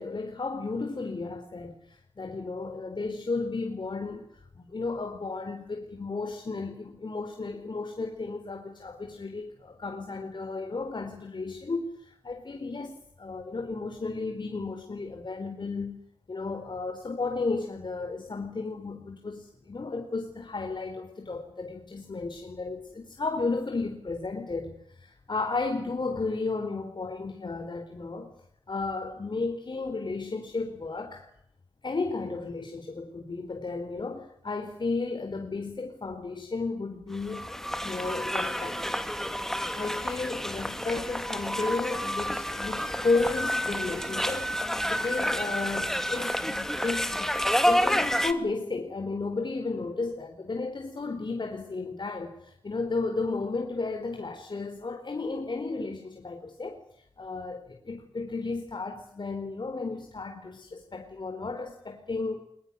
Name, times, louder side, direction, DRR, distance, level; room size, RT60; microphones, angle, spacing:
voice 1, 0.0-16.0 16.3-28.3 28.7-31.3 31.8-37.5 37.8-39.0 39.7-44.5 44.9-47.3 47.6-56.8 57.2-62.4, left 3 dB, 55° left, 4.3 m, -33 dB
sound 1, 37.1-48.3, equal, 5° left, 2.9 m, -29 dB
22.5 x 21.0 x 9.8 m
cardioid pair, 60°, 9 cm